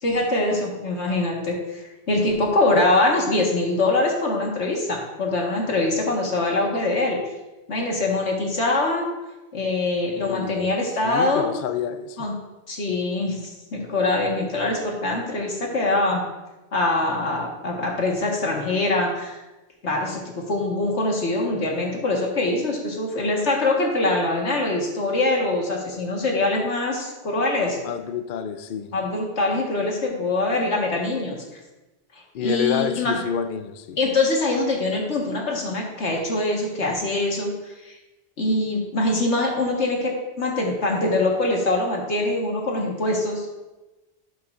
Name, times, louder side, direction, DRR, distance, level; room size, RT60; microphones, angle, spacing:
voice 1, 0.0-7.2 7.7-9.1 9.5-11.5 12.2-12.3 12.7-16.2 16.7-19.4 19.8-27.8 28.9-31.4 32.1-33.2 34.0-38.0 38.4-43.5, left 2 dB, 70° left, -1 dB, 1.9 m, -23 dB
voice 2, 10.2-10.7 11.0-12.3 27.8-28.9 32.3-34.0, left 8 dB, 55° left, 9 dB, 0.6 m, -28 dB
12.0 x 7.6 x 2.5 m, 1.1 s
omnidirectional pair, 1.2 m